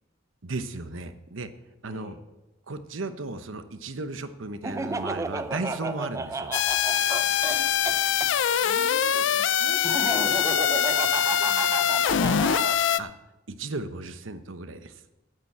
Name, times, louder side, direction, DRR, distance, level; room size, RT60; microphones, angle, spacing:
voice 1, 0.4-1.5 1.8-2.2 2.7-6.5 13.0-13.1 13.5-15.0, right 3 dB, 80° right, 10 dB, 0.9 m, -35 dB
Laughter, 4.6-8.3 9.8-12.8, right 2 dB, 15° right, 0.5 m, -32 dB
sound 1, 6.5-13.0, left 9 dB, 65° left, 0.4 m, -23 dB
voice 2, 8.6-10.3 10.6-12.5, left 1 dB, 80° left, 1 dB, 2.5 m, -44 dB
9.1 x 8.9 x 7.9 m, 1.0 s
head